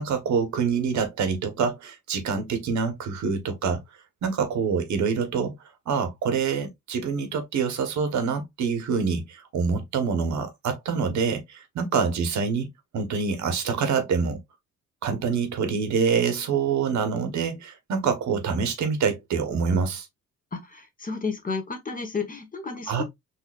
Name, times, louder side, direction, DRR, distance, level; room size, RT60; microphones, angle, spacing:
voice 1, 0.0-3.8 4.2-5.5 5.9-14.4 15.0-20.1 22.9-23.0, right 5 dB, 70° right, 1.1 m, -26 dB
voice 2, 20.5-23.0, left 4 dB, 30° left, 1.0 m, -32 dB
4.1 x 2.6 x 2.3 m
cardioid pair, 90°, 30 cm